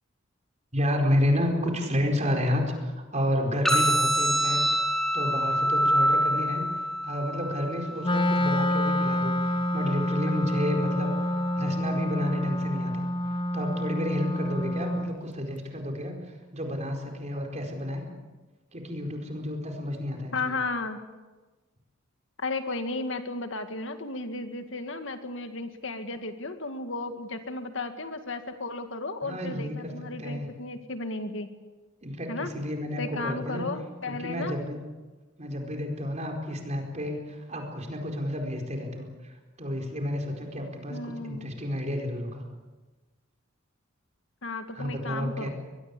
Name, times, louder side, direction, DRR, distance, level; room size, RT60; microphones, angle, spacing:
voice 1, 0.7-4.6 5.1-6.6 7.0-13.1 13.5-18.0 18.7-20.6 29.2-29.9 30.2-30.5 32.0-33.7 34.1-34.8 35.4-42.4 44.7-45.5, left 1 dB, 35° right, 3 dB, 4.6 m, -30 dB
sound 1, 3.7-11.6, equal, ahead, 4.5 m, -28 dB
Wind instrument woodwind instrument, 8.0-15.2, left 1 dB, 25° left, 1.0 m, -28 dB
voice 2, 20.3-21.0 22.4-31.5 32.3-32.5 33.0-34.6 40.9-41.5 44.4-45.5, left 3 dB, 65° left, 7 dB, 2.0 m, -34 dB
22.5 x 22.0 x 8.5 m, 1.2 s
head